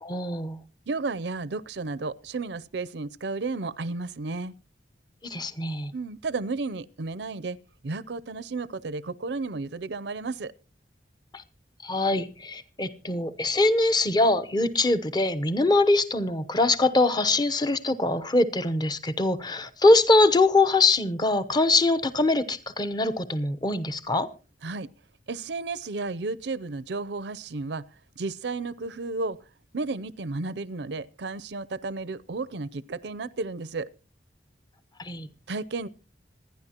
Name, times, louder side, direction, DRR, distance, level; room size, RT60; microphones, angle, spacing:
voice 1, 0.0-0.6 5.2-5.9 11.3-11.4 11.8-24.3 35.0-35.3, left 2 dB, 25° left, 0.8 m, -23 dB
voice 2, 0.9-4.5 5.9-7.6 7.8-10.5 24.6-24.9 25.3-27.8 28.2-29.4 29.7-33.9 35.5-35.9, right 3 dB, 65° right, 0.6 m, -33 dB
26.5 x 10.5 x 2.9 m
head